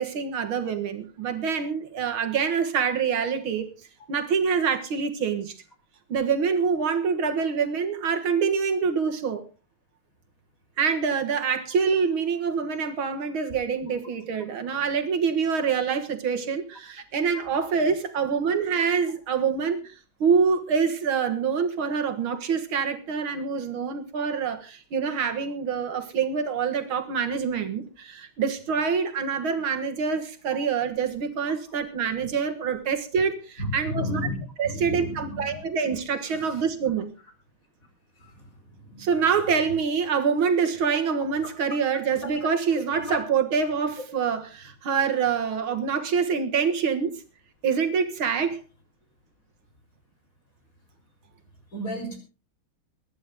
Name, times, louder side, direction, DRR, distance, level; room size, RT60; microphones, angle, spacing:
voice 1, 0.0-3.7 4.1-5.5 6.1-9.5 10.8-34.2 34.6-37.1 39.0-47.2 47.6-48.6, right 6 dB, 70° right, 7 dB, 2.3 m, -26 dB
voice 2, 33.6-34.3 34.6-35.6 36.3-36.6 38.2-38.5 38.8-39.1 41.4-41.5 42.2-42.3 42.9-43.2 51.7-52.2, left 1 dB, 40° left, 4 dB, 4.8 m, -33 dB
22.5 x 10.5 x 3.7 m, 0.33 s
omnidirectional pair, 2.3 m